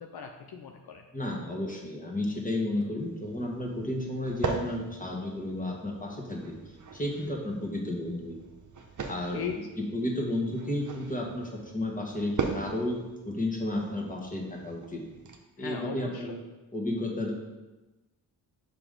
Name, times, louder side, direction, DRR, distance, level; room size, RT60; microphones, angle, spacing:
voice 1, 0.0-1.1 9.0-9.6 15.6-16.4, left 7 dB, 70° left, 4 dB, 0.6 m, -39 dB
voice 2, 1.1-6.5 6.9-8.4 9.1-9.4 9.9-15.0 15.6-16.4 16.7-17.3, left 1 dB, 20° left, 0 dB, 1.4 m, -32 dB
sound 1, 3.0-15.4, right 4 dB, 50° right, 0.8 m, -40 dB
5.3 x 4.8 x 3.7 m, 1.1 s
cardioid pair, 65°, 39 cm